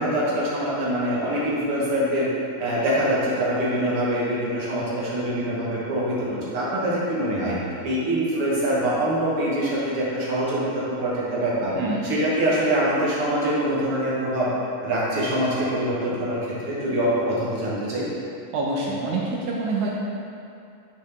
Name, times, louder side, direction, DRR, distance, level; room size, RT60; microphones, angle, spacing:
voice 1, 0.0-2.3 2.6-6.2 6.4-7.5 7.8-11.7 12.0-14.5 14.8-16.4 16.6-18.0, right 1 dB, 55° right, -7 dB, 1.8 m, -24 dB
voice 2, 11.8-12.1 18.5-19.9, right 3 dB, 75° right, -4 dB, 1.8 m, -26 dB
11.5 x 5.2 x 3.4 m, 2.6 s
omnidirectional pair, 4.2 m